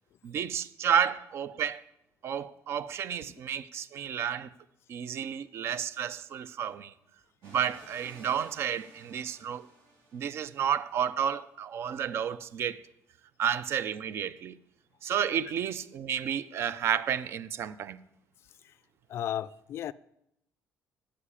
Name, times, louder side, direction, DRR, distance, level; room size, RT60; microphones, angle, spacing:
voice 1, 0.2-1.8 2.2-4.5 4.9-6.9 7.4-9.7 10.1-12.8 13.4-14.6 15.0-18.0, right 8 dB, 50° right, 0.5 m, -31 dB
sound 1, 7.4-10.9, right 1 dB, 65° right, 4.3 m, -55 dB
voice 2, 19.1-19.9, left 11 dB, 50° left, 0.3 m, -34 dB
9.8 x 5.7 x 8.5 m
cardioid pair, 160°, 6 cm